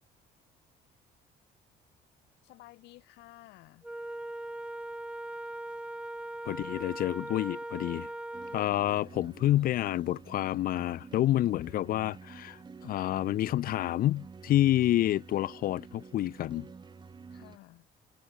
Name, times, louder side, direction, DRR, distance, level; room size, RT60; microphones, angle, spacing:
voice 1, 2.4-3.9 8.8-9.2 17.3-17.9, left 19 dB, 90° left, 5.1 m, -54 dB
Wind instrument woodwind instrument, 3.8-8.7, right 1 dB, 5° right, 1.2 m, -40 dB
voice 2, 6.4-8.1 8.5-16.7, left 13 dB, 60° left, 0.6 m, -28 dB
sound 1, 8.3-17.6, right 5 dB, 25° right, 1.5 m, -49 dB
cardioid pair, 110°, 17 cm